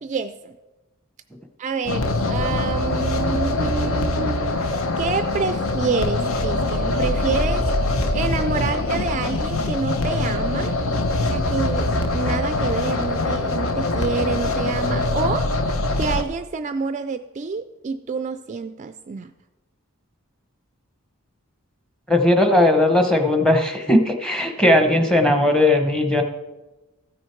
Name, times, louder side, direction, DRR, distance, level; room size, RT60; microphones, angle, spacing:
voice 1, 0.0-0.5 1.6-10.7 11.3-15.5 16.0-19.3, right 5 dB, 35° right, 9 dB, 0.3 m, -28 dB
sound 1, 1.8-16.2, left 2 dB, 70° left, 0.8 m, -23 dB
voice 2, 22.1-26.2, left 1 dB, 5° left, 5 dB, 0.9 m, -17 dB
14.5 x 6.3 x 4.5 m, 1.1 s
head